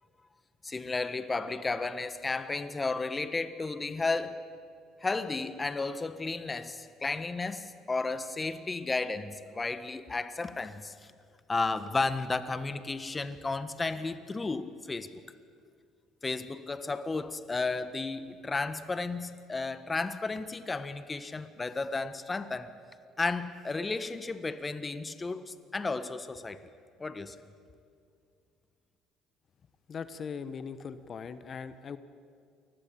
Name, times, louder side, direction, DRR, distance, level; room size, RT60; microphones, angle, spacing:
voice 1, 0.6-4.4 5.0-10.9 11.5-15.1 16.2-22.7 23.2-26.6 27.0-27.3, left 3 dB, 25° left, 1.6 m, -33 dB
voice 2, 29.9-32.0, left 6 dB, 45° left, 1.3 m, -40 dB
28.5 x 20.5 x 8.8 m
hypercardioid pair, 70°, 0 cm